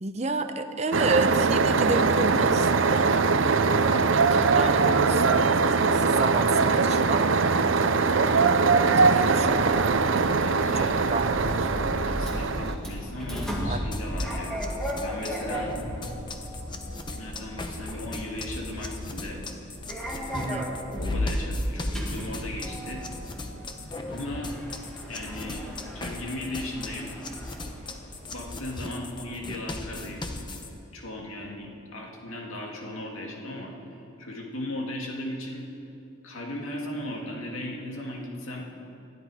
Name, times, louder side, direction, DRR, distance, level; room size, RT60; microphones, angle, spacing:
voice 1, 0.0-3.1 4.1-7.3 8.9-9.9 10.7-11.7 13.7-13.8 20.3-20.7, right 3 dB, 30° right, 7 dB, 0.7 m, -31 dB
sound 1, 0.9-12.7, right 4 dB, 65° right, 0.6 m, -22 dB
Sliding door, 9.1-28.7, equal, 5° left, 2.0 m, -35 dB
voice 2, 10.5-10.9 12.1-14.6 15.0-15.7 17.1-19.4 20.2-20.7 21.0-23.1 24.1-24.6 25.1-27.2 28.3-30.6 30.9-33.8 34.2-35.7 36.2-38.6, left 1 dB, 80° left, 0 dB, 2.3 m, -37 dB
sound 2, 13.9-30.7, left 2 dB, 20° left, 0.9 m, -39 dB
20.0 x 12.5 x 4.9 m, 2.8 s
head